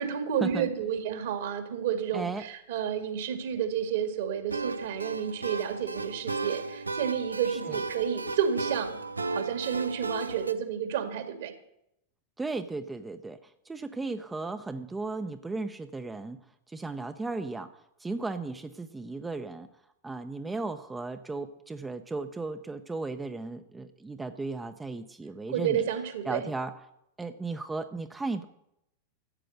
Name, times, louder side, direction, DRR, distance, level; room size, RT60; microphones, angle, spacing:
voice 1, 0.0-9.0 9.3-11.5 25.5-26.4, right 8 dB, 55° right, 6 dB, 2.1 m, -30 dB
voice 2, 2.1-2.4 7.5-7.8 12.4-16.4 16.7-17.7 18.0-19.7 20.0-25.8 26.2-26.7 27.2-28.4, right 3 dB, 10° right, 8 dB, 0.7 m, -35 dB
sound 1, 4.5-10.5, right 3 dB, 80° right, 0.7 m, -35 dB
14.5 x 8.7 x 6.5 m, 0.80 s
figure-of-eight pair, 90°, 0 cm